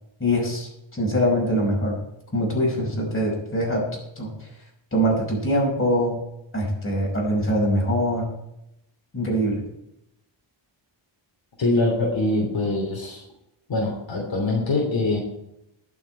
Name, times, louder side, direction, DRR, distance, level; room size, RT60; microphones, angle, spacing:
voice 1, 0.2-2.0 2.3-3.9 4.1-4.3 4.9-6.2 6.5-8.3 9.1-9.6, equal, 25° left, -2 dB, 5.2 m, -23 dB
voice 2, 11.6-13.2 13.7-15.2, left 2 dB, 65° left, -1 dB, 3.1 m, -23 dB
20.5 x 7.3 x 4.5 m, 0.85 s
wide cardioid pair, 165°, 48 cm